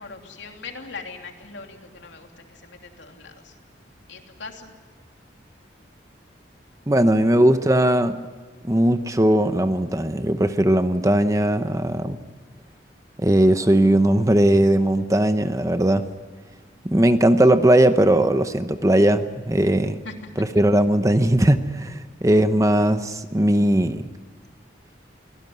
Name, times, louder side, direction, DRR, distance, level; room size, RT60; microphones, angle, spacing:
voice 1, 0.0-3.5 4.1-4.7 20.0-20.3, left 4 dB, 75° left, 3 dB, 3.1 m, -40 dB
voice 2, 6.9-8.2 8.6-12.2 13.2-16.1 16.8-20.0 20.4-24.0, right 1 dB, 15° right, 10 dB, 0.8 m, -19 dB
24.0 x 17.5 x 9.4 m, 1.3 s
head